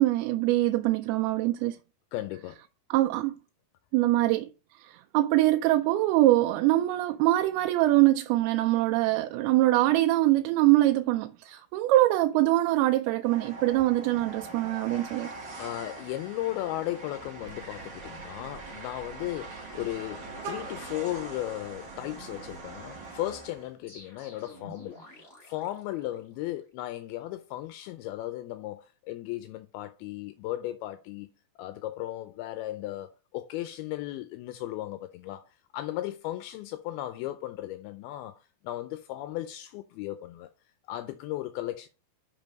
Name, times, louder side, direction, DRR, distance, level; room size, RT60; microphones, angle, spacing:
voice 1, 0.0-1.8 2.9-3.3 3.9-4.5 4.8-15.3, right 16 dB, 90° right, 2.5 m, -23 dB
voice 2, 2.1-2.6 15.6-31.3 31.6-40.5 40.9-41.9, left 15 dB, 85° left, 2.5 m, -36 dB
Train, 13.2-23.7, right 3 dB, 40° right, 1.8 m, -43 dB
Vehicle horn car horn honking, 17.5-22.6, right 6 dB, 70° right, 2.6 m, -47 dB
sound 1, 23.9-26.6, left 1 dB, 25° left, 3.6 m, -50 dB
6.0 x 5.5 x 5.1 m
omnidirectional pair, 4.4 m